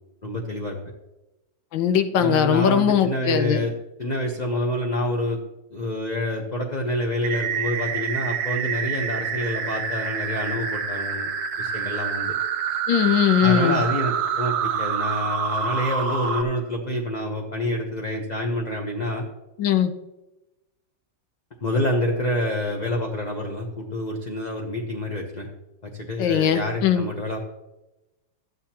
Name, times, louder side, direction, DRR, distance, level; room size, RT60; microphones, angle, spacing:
voice 1, 0.2-0.8 2.1-3.7 4.0-5.4 5.7-11.3 11.6-12.3 13.4-19.2 21.6-25.5 25.8-27.4, left 1 dB, 30° left, 1 dB, 0.8 m, -27 dB
voice 2, 1.7-3.6 12.9-13.8 19.6-19.9 26.2-27.0, left 9 dB, 90° left, 9 dB, 1.5 m, -20 dB
sound 1, 7.2-16.4, right 7 dB, 60° right, 1.2 m, -27 dB
13.0 x 9.3 x 2.9 m, 0.99 s
omnidirectional pair, 2.0 m